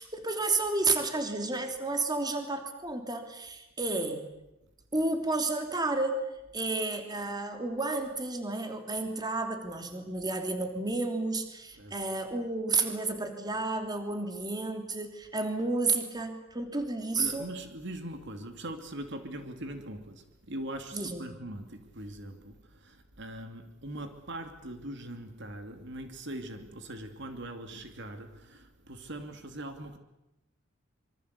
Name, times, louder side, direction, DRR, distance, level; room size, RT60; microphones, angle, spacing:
voice 1, 0.0-4.3 4.9-6.2 6.5-17.5 20.9-21.3, right 3 dB, 20° right, 3.1 m, -31 dB
voice 2, 17.2-30.0, right 1 dB, 60° right, 2.7 m, -41 dB
26.0 x 24.5 x 8.3 m
head